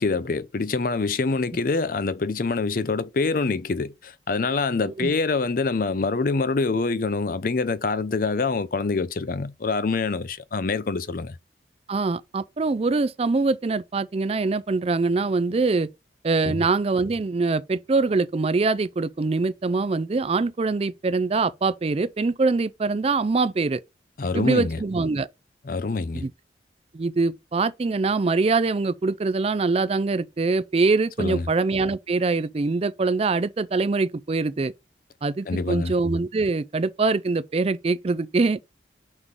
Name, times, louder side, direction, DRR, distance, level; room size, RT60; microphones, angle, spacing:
voice 1, 0.0-11.3 16.4-16.6 24.2-24.8 25.6-26.2 31.2-31.4 35.5-35.9, left 3 dB, 50° left, 0.5 m, -25 dB
voice 2, 11.9-15.9 16.2-23.8 24.3-25.3 26.1-26.3 26.9-34.7 35.2-38.6, right 3 dB, 35° right, 0.4 m, -23 dB
6.0 x 3.7 x 4.9 m
head